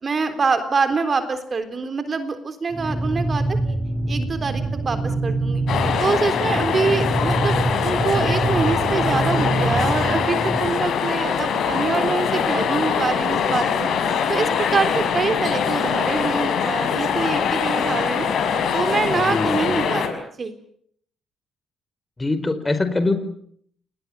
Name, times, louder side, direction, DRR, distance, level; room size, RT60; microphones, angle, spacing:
voice 1, 0.0-3.8 4.1-5.6 6.0-13.9 14.3-18.3 18.7-20.0 20.4-20.5, right 4 dB, 45° right, 10 dB, 3.7 m, -25 dB
sound 1, 2.7-10.7, right 2 dB, 25° right, 5.8 m, -25 dB
sound 2, 5.7-20.1, left 6 dB, 65° left, 5.0 m, -23 dB
voice 2, 19.1-19.8 22.2-23.1, left 2 dB, 20° left, 10 dB, 4.5 m, -23 dB
29.0 x 20.5 x 7.7 m, 0.65 s
hypercardioid pair, 50°, 0 cm